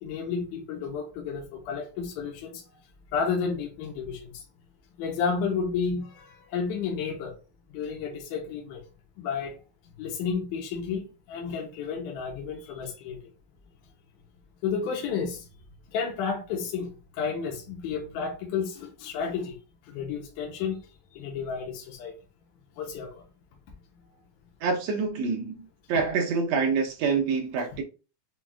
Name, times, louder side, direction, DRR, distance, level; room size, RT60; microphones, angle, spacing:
voice 1, 0.0-2.6 3.1-4.4 5.0-7.4 7.7-8.8 9.2-9.6 10.0-13.2 14.6-15.5 15.9-19.6 19.9-20.8 21.2-22.1 22.8-23.2, left 6 dB, 80° left, 2.2 m, -31 dB
voice 2, 24.6-25.5 25.9-27.8, right 5 dB, 80° right, 1.6 m, -26 dB
6.0 x 2.3 x 2.3 m
omnidirectional pair, 3.6 m